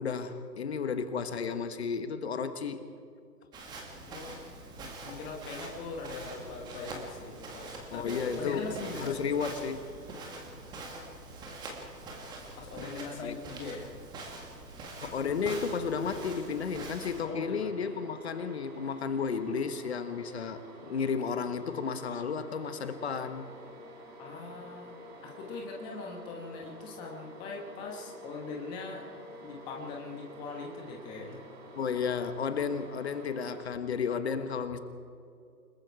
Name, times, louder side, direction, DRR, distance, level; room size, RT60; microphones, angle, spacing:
voice 1, 0.0-2.9 7.9-8.6 9.0-9.9 13.2-13.4 15.0-23.5 31.7-34.8, left 6 dB, 40° left, 10 dB, 1.3 m, -33 dB
Walk footsteps, 3.5-17.2, right 2 dB, 10° right, 1.7 m, -44 dB
voice 2, 4.0-4.3 4.7-9.3 12.6-13.9 17.2-18.0 24.2-25.0 25.2-29.1 29.4-31.4, left 4 dB, 10° left, 0 dB, 1.1 m, -41 dB
sound 1, 16.4-33.7, right 2 dB, 25° right, 3.8 m, -51 dB
sound 2, 21.9-30.7, left 2 dB, 80° right, 5.4 m, -52 dB
29.0 x 20.0 x 4.7 m, 2.3 s
figure-of-eight pair, 145°, 50 cm